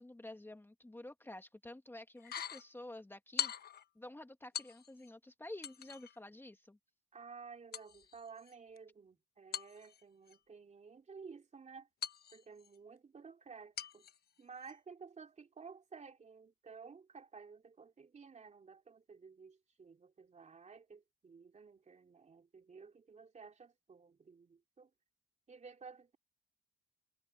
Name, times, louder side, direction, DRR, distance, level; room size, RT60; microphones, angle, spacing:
voice 1, 0.0-3.5 3.9-6.8, left 1 dB, 10° left, 1.6 m, -50 dB
sound 1, 2.2-2.7 3.4-3.9 4.5-5.1 5.6-6.2 7.7-8.8 9.5-10.4 12.0-12.8 13.8-14.2 14.6-14.7, left 8 dB, 50° left, 1.1 m, -43 dB
voice 2, 7.1-11.9 12.3-14.1 14.4-24.9 25.5-26.2, right 5 dB, 35° right, 3.3 m, -54 dB
cardioid pair, 90°, 20 cm